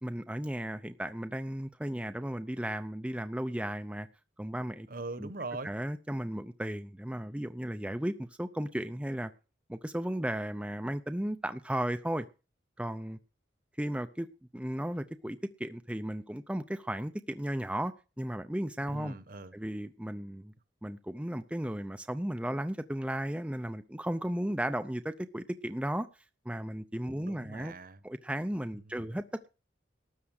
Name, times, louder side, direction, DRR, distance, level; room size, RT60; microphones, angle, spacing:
voice 1, 0.0-4.1 4.4-4.9 5.2-5.3 5.6-9.3 9.7-12.3 12.8-13.2 13.8-14.3 14.5-19.2 19.5-20.5 20.8-26.1 26.5-27.7 28.0-29.5, right 1 dB, 5° right, 0.6 m, -35 dB
voice 2, 4.9-5.7 18.9-19.5 27.1-28.0 28.9-29.0, right 3 dB, 50° right, 1.2 m, -41 dB
13.0 x 8.4 x 6.5 m
head